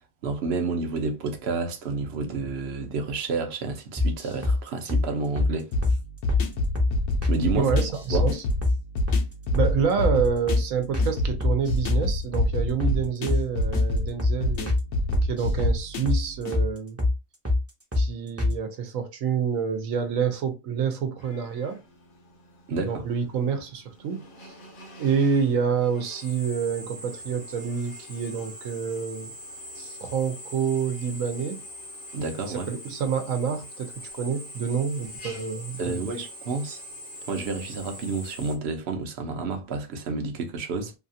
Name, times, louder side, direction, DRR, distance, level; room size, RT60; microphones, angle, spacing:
voice 1, 0.2-5.7 7.3-7.7 8.1-8.3 22.7-23.0 32.1-32.7 35.8-36.8 37.3-40.9, right 4 dB, 60° right, 0.8 m, -30 dB
sound 1, 4.0-4.6 4.9-5.1 5.4-5.5 5.8-6.0 6.3-6.4 6.8-6.9 7.2-7.4 7.7-8.3 8.6-8.8 9.1-9.2 9.5-9.7 10.0-10.2 10.5-10.6 10.9-11.1 11.4-12.0 12.3-12.5 12.8-13.0 13.3-13.4 13.7-13.9 14.2-14.4 14.7-14.8 15.1-15.8 16.1-16.2 16.5-16.7 17.0-17.1 17.4-17.6 17.9-18.1 18.4-18.5, left 2 dB, 15° right, 0.5 m, -23 dB
sound 2, 5.7-16.6, left 1 dB, 70° left, 0.9 m, -28 dB
voice 2, 7.5-8.4 9.5-14.7 15.2-17.0 17.9-21.8 22.8-24.2 25.0-29.3 29.8-31.6 32.7-36.0, right 6 dB, 80° right, 1.1 m, -27 dB
Drill, 21.2-38.6, left 1 dB, 50° left, 0.7 m, -43 dB
2.8 x 2.4 x 2.6 m
omnidirectional pair, 1.3 m